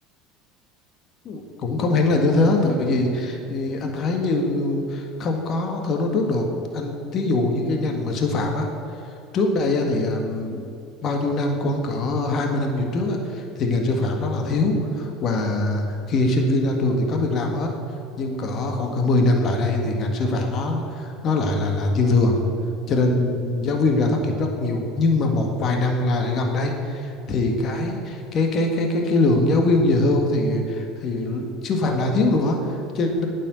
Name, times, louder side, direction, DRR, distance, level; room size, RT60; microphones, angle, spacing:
voice 1, 1.3-6.4 6.7-8.7 9.3-10.6 11.0-17.7 18.2-22.4 22.9-33.3, left 2 dB, 50° left, 3 dB, 1.7 m, -22 dB
9.3 x 7.6 x 8.0 m, 2.6 s
hypercardioid pair, 90°, 0 cm